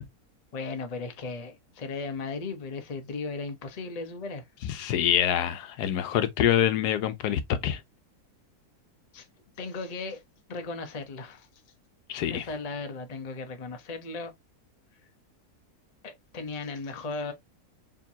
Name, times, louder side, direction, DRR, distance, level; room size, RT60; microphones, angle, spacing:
voice 1, 0.5-4.4 9.1-9.3 9.6-10.2 10.5-11.5 12.3-14.3 16.0-17.3, left 3 dB, 35° left, 0.7 m, -36 dB
voice 2, 4.7-7.8 12.1-12.4, left 10 dB, 85° left, 1.2 m, -25 dB
4.5 x 3.6 x 2.7 m
omnidirectional pair, 1.7 m